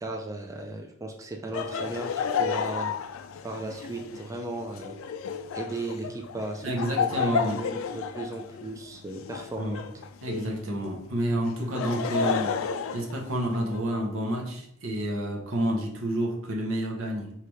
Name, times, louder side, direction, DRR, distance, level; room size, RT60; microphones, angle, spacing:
voice 1, 0.0-2.9 3.4-4.9 5.5-9.8, right 2 dB, 15° right, 2 dB, 0.4 m, -36 dB
Laughter, 1.5-10.6 11.5-13.8, left 6 dB, 75° left, 0.3 m, -32 dB
voice 2, 6.6-7.6 9.6-9.8 10.2-12.6 12.9-17.3, right 1 dB, 80° right, 1 dB, 0.9 m, -29 dB
4.9 x 2.8 x 3.0 m, 0.72 s
head